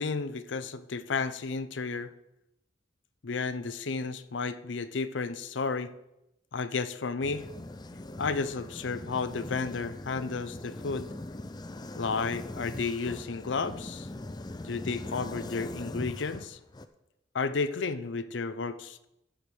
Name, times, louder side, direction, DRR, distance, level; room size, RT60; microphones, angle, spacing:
voice 1, 0.0-2.1 3.2-5.9 6.5-7.5 8.2-11.1 12.0-14.1 14.6-16.6 17.3-19.1, left 4 dB, 80° left, 13 dB, 0.6 m, -32 dB
sound 1, 7.2-16.9, left 2 dB, 20° left, 0.5 m, -41 dB
14.0 x 5.0 x 6.2 m, 0.88 s
head